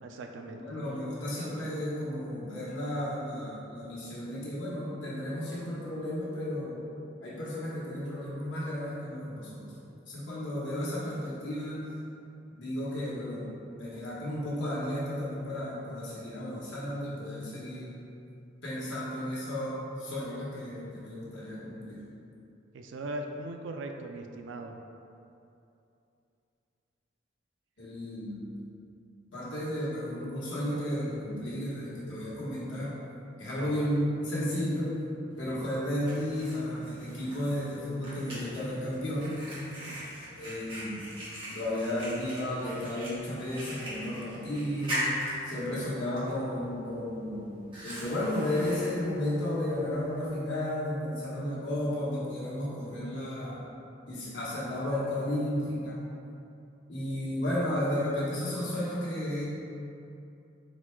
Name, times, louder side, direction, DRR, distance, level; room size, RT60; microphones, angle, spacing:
voice 1, 0.0-0.6 22.7-24.8 33.6-33.8 39.8-40.0, right 2 dB, 85° right, 4 dB, 0.4 m, -39 dB
voice 2, 0.5-6.8 7.2-9.7 10.1-11.8 12.6-13.5 13.8-18.0 18.6-22.0 27.8-28.5 29.3-33.0 33.4-34.9 35.4-39.3 40.3-41.0 41.5-45.1 45.4-53.6 54.1-56.0 56.9-59.5, left 1 dB, 80° left, -8 dB, 1.2 m, -33 dB
Fire, 35.3-50.3, equal, 30° right, 1.1 m, -41 dB
4.0 x 2.3 x 4.4 m, 2.7 s
head